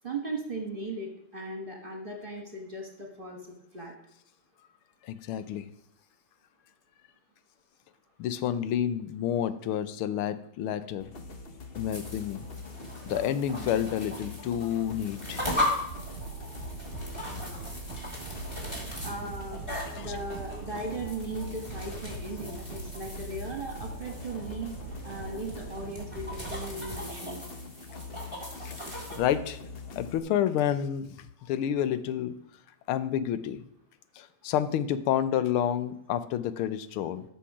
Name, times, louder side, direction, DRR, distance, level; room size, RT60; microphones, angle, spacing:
voice 1, 0.0-3.4 3.7-3.9 19.0-19.6 20.0-24.7 25.0-27.4, right 2 dB, 25° right, 3 dB, 1.6 m, -37 dB
voice 2, 5.0-5.7 8.2-11.1 11.7-12.4 13.1-15.4 19.7-20.2 28.6-28.8 29.1-29.6 29.9-32.3 32.9-33.6 34.2-37.2, left 10 dB, 90° left, 14 dB, 1.6 m, -29 dB
sound 1, 11.0-30.2, left 4 dB, 50° left, 0.7 m, -43 dB
sound 2, 11.7-29.2, left 1 dB, 15° left, 2.6 m, -38 dB
sound 3, 15.9-27.0, right 9 dB, 75° right, 1.4 m, -43 dB
13.5 x 5.8 x 4.9 m, 0.78 s
omnidirectional pair, 2.3 m